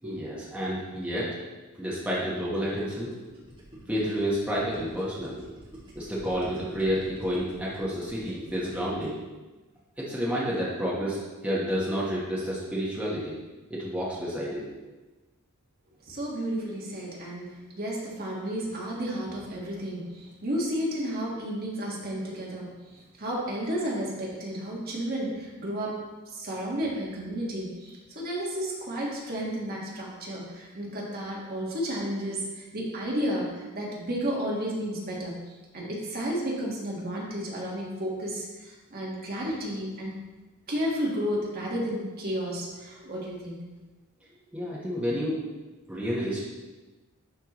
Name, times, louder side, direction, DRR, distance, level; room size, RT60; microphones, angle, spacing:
voice 1, 0.0-1.4 1.8-3.1 3.9-5.4 5.9-9.2 10.0-13.3 13.7-14.6 44.5-45.4 45.9-46.4, equal, 5° right, -7 dB, 1.1 m, -30 dB
Gurgling, 2.4-9.2, right 1 dB, 20° right, 2.1 m, -48 dB
voice 2, 16.1-26.0 26.3-35.4 35.7-40.1 40.7-43.6, equal, 45° right, -4 dB, 1.5 m, -32 dB
11.0 x 4.4 x 3.0 m, 1.2 s
head